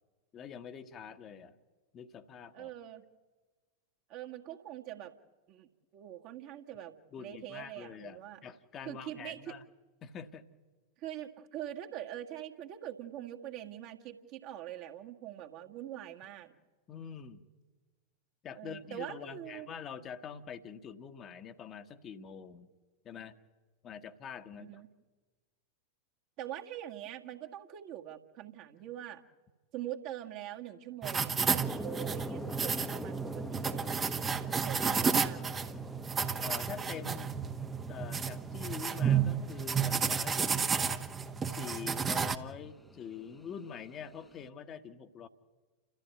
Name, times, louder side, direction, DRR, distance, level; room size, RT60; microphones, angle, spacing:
voice 1, 0.3-1.6 1.9-2.7 7.1-9.6 10.0-10.5 16.9-17.4 18.4-22.7 23.0-23.4 23.8-24.7 36.4-37.4 37.9-41.1 41.5-45.3, left 7 dB, 30° left, 7 dB, 1.3 m, -45 dB
voice 2, 2.5-3.0 4.1-5.2 5.5-8.4 8.8-9.6 11.0-16.5 18.6-19.7 24.6-24.9 26.4-29.2 29.7-35.7, right 12 dB, 40° right, 2 dB, 1.8 m, -44 dB
sound 1, 31.0-42.4, right 6 dB, 20° right, 1.1 m, -32 dB
sound 2, 31.6-44.5, left 1 dB, 5° left, 1.1 m, -46 dB
29.5 x 14.0 x 9.2 m, 1.3 s
figure-of-eight pair, 90°, 0 cm